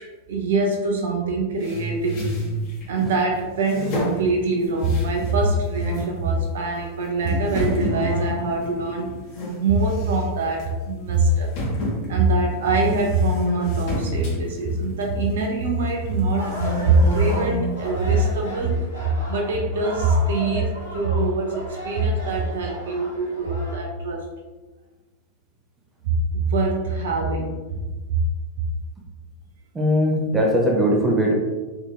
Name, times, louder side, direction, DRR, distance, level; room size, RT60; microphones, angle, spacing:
voice 1, 0.3-2.3 2.9-9.1 9.6-11.5 12.1-24.3 26.0-28.2 28.6-28.7, right 2 dB, 60° right, 1 dB, 0.4 m, -23 dB
sound 1, 1.6-3.2 3.6-5.4 5.7-6.1 6.7-6.8 7.3-9.6 9.9-10.2 10.6-10.7 11.5-15.5 16.0-17.7, equal, 45° left, 1.0 m, -29 dB
sound 2, 16.4-23.8, right 1 dB, 90° left, 1.3 m, -35 dB
voice 2, 29.7-31.3, equal, 15° right, -1 dB, 0.6 m, -19 dB
3.5 x 2.8 x 2.3 m, 1.2 s
figure-of-eight pair, 90°, 0 cm